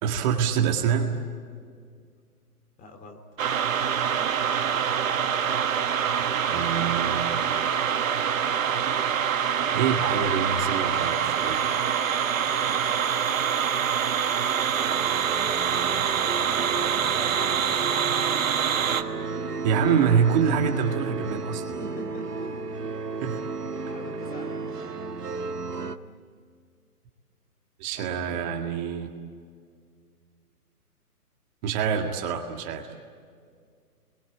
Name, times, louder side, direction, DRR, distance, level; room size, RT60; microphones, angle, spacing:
voice 1, 0.0-1.2 6.5-7.3 9.7-11.7 19.6-21.8 23.2-23.4 27.8-29.2 31.6-32.9, right 7 dB, 30° right, 3 dB, 1.9 m, -26 dB
voice 2, 2.8-3.2 12.4-12.8 16.3-17.9 21.8-22.7 23.1-23.3 23.8-24.6, left 2 dB, 15° left, 4 dB, 2.5 m, -43 dB
sound 1, 3.4-19.0, right 8 dB, 60° right, 1.7 m, -25 dB
sound 2, 14.3-26.0, right 4 dB, 80° right, 1.6 m, -34 dB
29.5 x 22.5 x 9.0 m, 2.1 s
figure-of-eight pair, 130°, 46 cm